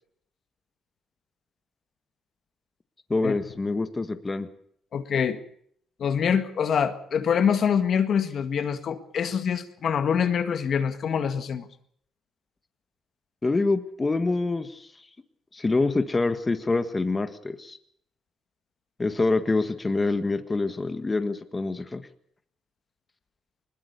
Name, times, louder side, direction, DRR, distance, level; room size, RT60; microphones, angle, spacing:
voice 1, 3.1-4.5 13.4-14.9 15.5-17.8 19.0-22.0, left 3 dB, 25° left, 8 dB, 1.6 m, -26 dB
voice 2, 4.9-5.4 6.0-11.7, left 7 dB, 60° left, 8 dB, 1.8 m, -25 dB
21.5 x 20.5 x 6.9 m, 0.65 s
cardioid pair, 90°, 0 cm